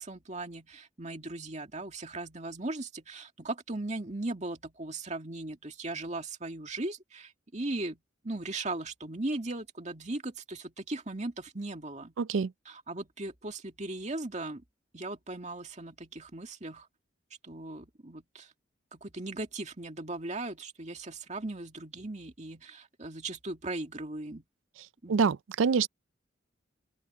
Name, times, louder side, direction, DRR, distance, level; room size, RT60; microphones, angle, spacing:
voice 1, 0.0-12.1 12.7-14.6 14.9-16.9 17.4-18.5 18.9-24.4 25.0-25.3, right 2 dB, 35° right, 2.3 m, -38 dB
voice 2, 12.2-12.5 25.1-25.9, right 5 dB, 85° right, 0.4 m, -26 dB
open air
head